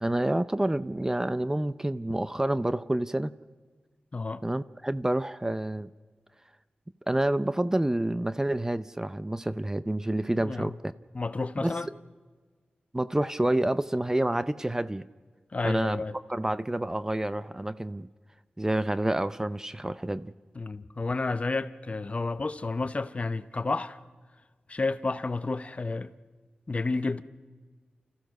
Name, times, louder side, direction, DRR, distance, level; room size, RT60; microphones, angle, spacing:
voice 1, 0.0-3.3 4.4-5.9 7.1-10.9 11.6-11.8 12.9-15.0 15.6-16.0 16.3-18.1 18.6-20.3, right 1 dB, 15° right, 0.5 m, -28 dB
voice 2, 4.1-4.4 10.4-10.7 11.1-11.9 15.5-16.1 20.5-24.0 24.7-26.1 26.7-27.2, left 3 dB, 40° left, 0.8 m, -30 dB
29.5 x 14.5 x 6.4 m
wide cardioid pair, 70°, 3 cm